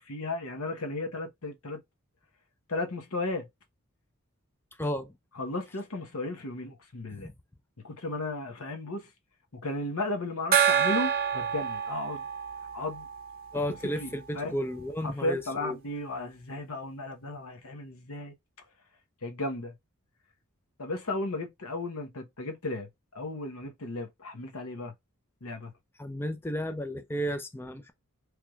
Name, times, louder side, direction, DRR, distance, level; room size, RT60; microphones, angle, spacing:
voice 1, 0.0-1.8 2.7-3.5 5.3-7.3 7.8-9.1 9.5-12.3 12.7-13.1 14.0-14.1 14.3-14.6 15.0-18.3 19.2-19.7 20.8-22.9 23.1-24.9 25.4-25.7, left 2 dB, 75° left, 1.1 m, -35 dB
voice 2, 4.8-5.1 7.2-7.3 13.5-15.8 26.0-27.9, equal, 10° left, 0.4 m, -33 dB
Gong, 10.5-13.8, right 8 dB, 45° right, 0.6 m, -27 dB
4.6 x 3.3 x 2.3 m
head